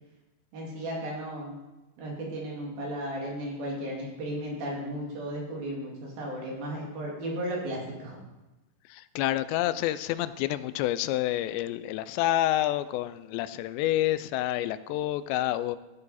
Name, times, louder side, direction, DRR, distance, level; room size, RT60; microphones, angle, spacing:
voice 1, 0.5-1.6 2.0-8.2, right 1 dB, 60° right, -2 dB, 4.1 m, -35 dB
voice 2, 8.9-15.8, left 14 dB, 90° left, 14 dB, 2.8 m, -28 dB
15.5 x 8.8 x 4.2 m, 1.0 s
omnidirectional pair, 4.9 m